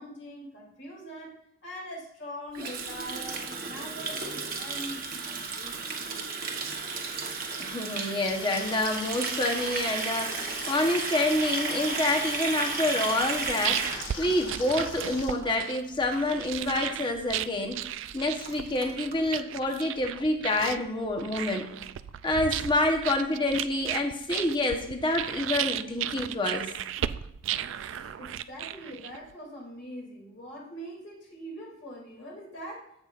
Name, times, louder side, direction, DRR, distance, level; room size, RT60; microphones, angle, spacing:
voice 1, 0.0-6.0 27.7-32.9, equal, 55° left, -3 dB, 2.7 m, -43 dB
Water tap faucet, 2.5-15.6 15.8-16.1 16.4-16.7 17.0-17.1 17.3-17.4 17.8-17.9 18.1-19.2, right 4 dB, 45° right, 1.0 m, -34 dB
voice 2, 7.6-13.9 14.2-17.8 18.1-21.7 22.2-26.7, left 1 dB, 20° left, 3 dB, 1.0 m, -27 dB
sound 1, 8.2-15.3, left 5 dB, 70° left, 1.3 m, -42 dB
sound 2, 13.2-29.3, right 11 dB, 65° right, 0.3 m, -35 dB
15.0 x 5.6 x 2.5 m, 0.80 s
head